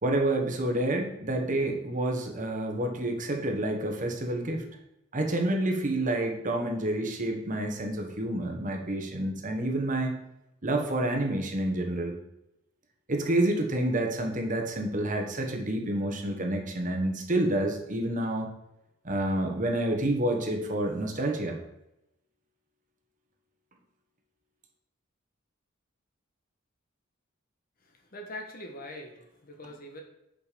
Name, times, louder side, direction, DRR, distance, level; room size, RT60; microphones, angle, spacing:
voice 1, 0.0-4.6 5.1-10.2 10.6-12.1 13.1-18.5 19.0-21.6, right 1 dB, 40° right, 3 dB, 1.3 m, -28 dB
voice 2, 28.1-30.0, left 1 dB, 45° left, 3 dB, 1.3 m, -42 dB
7.5 x 5.3 x 5.1 m, 0.85 s
head